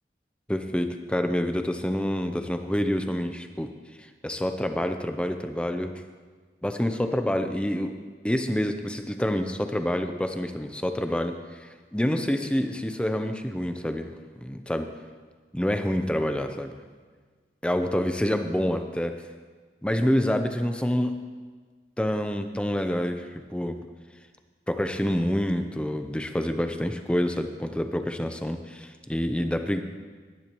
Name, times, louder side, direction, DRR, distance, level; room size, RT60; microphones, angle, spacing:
voice 1, 0.5-3.7 4.0-6.0 6.6-7.9 8.2-14.1 14.4-14.9 15.5-16.8 17.6-19.2 19.8-21.2 22.0-23.8 24.7-29.8, equal, 5° left, 7 dB, 0.6 m, -27 dB
18.5 x 10.0 x 3.0 m, 1.5 s
head